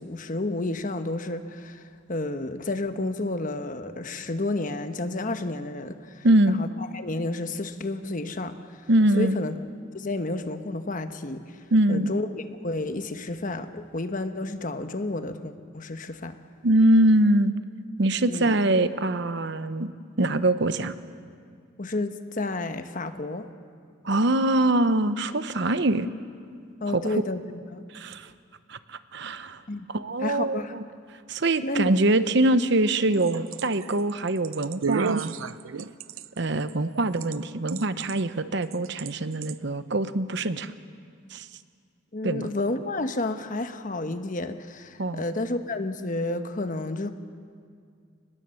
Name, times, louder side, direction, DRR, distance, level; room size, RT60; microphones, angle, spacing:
voice 1, 0.0-1.8 2.1-6.3 6.6-6.7 6.9-8.8 9.2-9.5 9.9-11.6 11.9-16.4 18.3-18.6 21.8-23.5 26.8-27.8 29.7-29.9 30.2-30.7 31.6-31.9 42.1-47.1, left 2 dB, 40° left, 9 dB, 1.1 m, -31 dB
voice 2, 6.2-6.6 8.9-9.4 11.7-12.1 16.6-17.5 18.0-19.9 20.2-20.9 24.0-26.1 26.9-27.2 27.9-28.3 28.7-29.6 29.9-30.8 31.3-35.3 36.4-40.7 41.3-41.5 42.2-42.5 45.0-45.2, right 1 dB, 60° right, 12 dB, 0.9 m, -23 dB
sound 1, 33.0-37.4 37.7-38.2 38.7-39.1 39.4-39.5, right 5 dB, 90° right, 0.6 m, -31 dB
26.0 x 20.0 x 7.7 m, 2.2 s
head